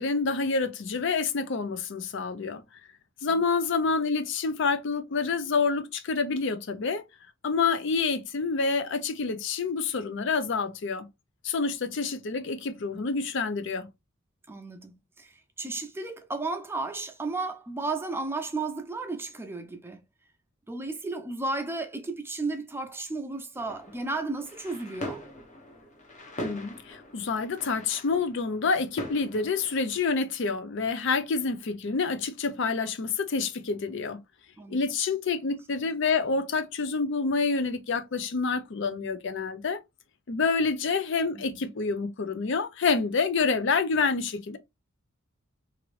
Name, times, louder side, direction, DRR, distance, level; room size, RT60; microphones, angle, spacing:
voice 1, 0.0-2.6 3.2-7.0 7.4-11.1 11.4-13.9 26.4-34.2 34.7-39.8 40.3-44.6, left 4 dB, 60° left, 0.5 m, -28 dB
voice 2, 14.5-20.0 20.7-25.2 34.6-34.8 41.3-41.6, right 3 dB, 10° right, 0.4 m, -34 dB
sound 1, 23.5-30.0, equal, 35° left, 0.8 m, -42 dB
2.9 x 2.5 x 3.0 m
head